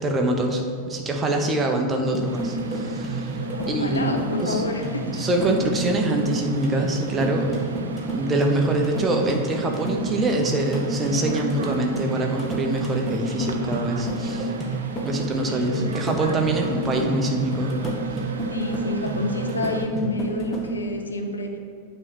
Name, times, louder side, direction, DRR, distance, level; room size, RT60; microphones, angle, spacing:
voice 1, 0.0-4.1 4.4-4.6 5.1-7.7 8.1-14.5 15.0-17.8, right 1 dB, 20° right, 2 dB, 1.0 m, -24 dB
sound 1, 2.1-20.7, right 2 dB, 10° left, 1.4 m, -30 dB
sound 2, 2.3-19.9, right 4 dB, 65° right, 0.5 m, -39 dB
voice 2, 3.4-5.1 15.3-15.9 18.5-21.6, left 2 dB, 75° left, 3 dB, 0.9 m, -29 dB
8.9 x 3.3 x 6.3 m, 2.3 s
figure-of-eight pair, 90°, 0 cm